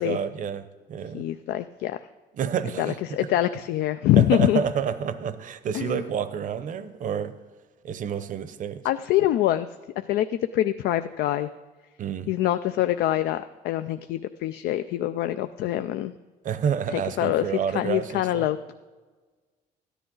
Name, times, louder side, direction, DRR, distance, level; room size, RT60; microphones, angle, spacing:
voice 1, 0.0-1.2 2.4-3.0 4.2-7.3 7.8-8.8 12.0-12.3 16.4-18.5, right 7 dB, 50° right, 13 dB, 0.7 m, -29 dB
voice 2, 1.1-2.0 2.8-4.6 5.7-6.0 8.8-9.7 10.1-10.3 10.5-11.5 12.3-16.1 16.9-18.6, left 13 dB, 75° left, 10 dB, 0.4 m, -24 dB
13.0 x 10.0 x 3.9 m, 1.4 s
cardioid pair, 110°, 17 cm